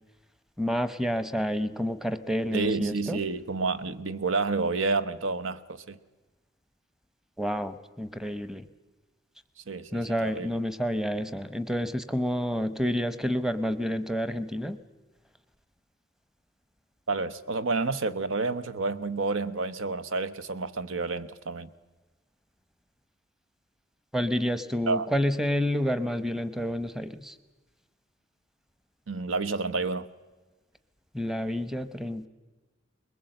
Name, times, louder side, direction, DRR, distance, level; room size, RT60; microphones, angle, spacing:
voice 1, 0.6-3.2 7.4-8.6 9.9-14.8 24.1-27.4 31.1-32.3, equal, ahead, 11 dB, 0.8 m, -29 dB
voice 2, 2.5-6.0 9.7-10.5 17.1-21.7 24.9-25.1 29.1-30.1, right 3 dB, 80° right, 11 dB, 0.9 m, -29 dB
21.5 x 20.5 x 7.8 m, 1.2 s
head